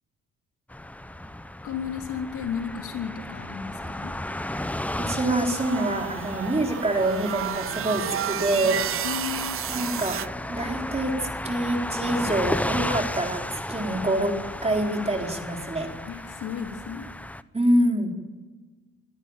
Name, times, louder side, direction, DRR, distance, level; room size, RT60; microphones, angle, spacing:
sound 1, 0.7-17.4, left 1 dB, 5° left, 0.8 m, -34 dB
voice 1, 1.6-4.1 9.0-9.6 16.1-17.1, left 7 dB, 80° left, 3 dB, 3.3 m, -33 dB
voice 2, 5.0-8.8 9.7-10.2 10.5-14.3 14.6-15.9 17.5-18.1, right 1 dB, 20° right, 2 dB, 4.3 m, -26 dB
sound 2, 5.5-10.3, right 11 dB, 45° right, 0.5 m, -31 dB
22.5 x 13.5 x 9.1 m, 1.3 s
cardioid pair, 90°, 30 cm